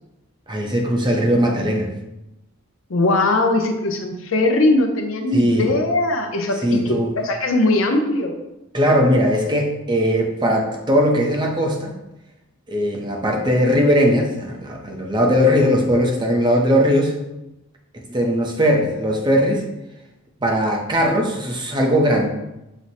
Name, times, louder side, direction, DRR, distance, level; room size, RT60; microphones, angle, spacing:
voice 1, 0.5-1.9 5.3-5.7 6.6-7.1 8.7-11.9 12.7-17.2 18.1-19.6 20.4-22.3, equal, 20° right, 1 dB, 0.6 m, -19 dB
voice 2, 2.9-8.4, left 2 dB, 75° left, 4 dB, 0.6 m, -20 dB
6.0 x 2.1 x 4.0 m, 0.93 s
head